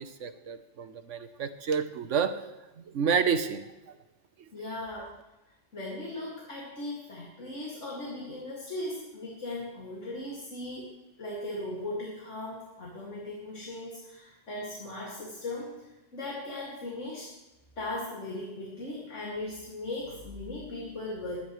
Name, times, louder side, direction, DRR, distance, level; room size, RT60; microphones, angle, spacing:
voice 1, 0.0-2.4 2.8-3.6 5.0-5.1, right 6 dB, 90° right, 9 dB, 1.3 m, -29 dB
voice 2, 4.5-5.1 5.7-10.9 11.2-15.8 16.1-17.4 17.8-21.4, left 2 dB, 80° left, -3 dB, 2.7 m, -38 dB
22.0 x 10.5 x 3.2 m, 1.0 s
omnidirectional pair, 1.2 m